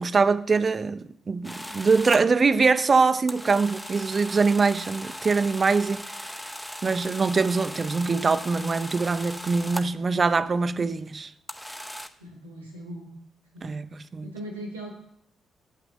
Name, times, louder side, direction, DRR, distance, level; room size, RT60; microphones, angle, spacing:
voice 1, 0.0-6.3 6.8-11.3 13.6-14.3, right 4 dB, 40° right, 0.5 m, -23 dB
sound 1, 1.4-2.2 3.3-10.0 11.5-12.1, equal, 5° left, 0.7 m, -38 dB
voice 2, 12.2-13.2 13.5-13.8 14.2-14.9, right 1 dB, 90° right, 1.2 m, -39 dB
7.4 x 5.9 x 7.4 m
figure-of-eight pair, 40°, 0 cm